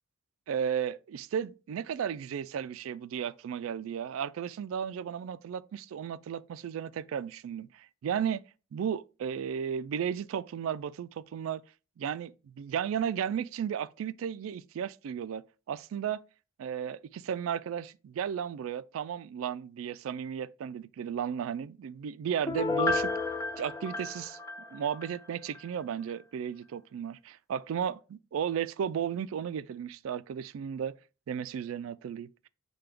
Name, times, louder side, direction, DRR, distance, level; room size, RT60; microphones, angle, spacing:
voice 1, 0.5-8.4 8.7-11.6 12.0-16.2 16.6-23.1 23.6-24.4 24.7-31.0 31.3-32.5, right 8 dB, 75° right, 0.3 m, -34 dB
Piano, 22.5-25.2 25.5-25.6, left 3 dB, 15° left, 0.4 m, -31 dB
6.6 x 2.3 x 3.5 m
head